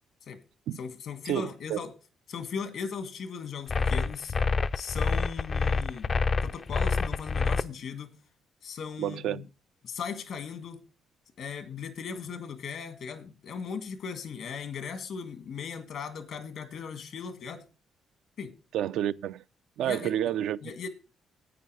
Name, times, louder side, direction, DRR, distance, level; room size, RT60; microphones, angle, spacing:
voice 1, 0.8-1.9 2.3-4.3 4.7-6.1 6.4-8.2 8.6-9.4 9.8-10.8 11.4-17.6 18.4-18.5 19.8-20.1 20.6-20.9, left 6 dB, 70° left, 1.7 m, -38 dB
voice 2, 1.3-1.8 9.0-9.4 18.7-19.4 19.8-20.7, right 11 dB, 80° right, 0.4 m, -30 dB
sound 1, 3.7-7.6, left 4 dB, 40° left, 0.5 m, -27 dB
9.9 x 8.6 x 4.8 m
cardioid pair, 90°, 0 cm